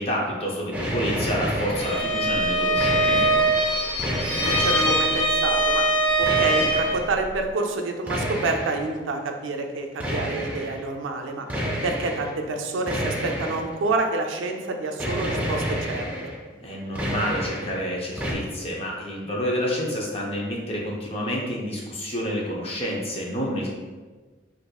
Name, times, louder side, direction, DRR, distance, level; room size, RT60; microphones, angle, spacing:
voice 1, 0.0-3.4 16.6-23.7, equal, 30° left, -3 dB, 0.6 m, -29 dB
sound 1, 0.7-2.2 2.5-3.6 4.0-5.3 6.2-7.1 8.1-8.9 10.0-10.8 11.5-12.3 12.9-14.0 15.0-16.4 16.7-17.8 18.2-18.3, equal, 10° right, 0.4 m, -29 dB
Bowed string instrument, 1.7-7.0, right 1 dB, 85° left, 1.1 m, -22 dB
voice 2, 4.4-5.8 6.2-11.4 11.8-16.1, right 3 dB, 85° right, 3 dB, 0.4 m, -28 dB
4.0 x 2.6 x 2.3 m, 1.3 s
head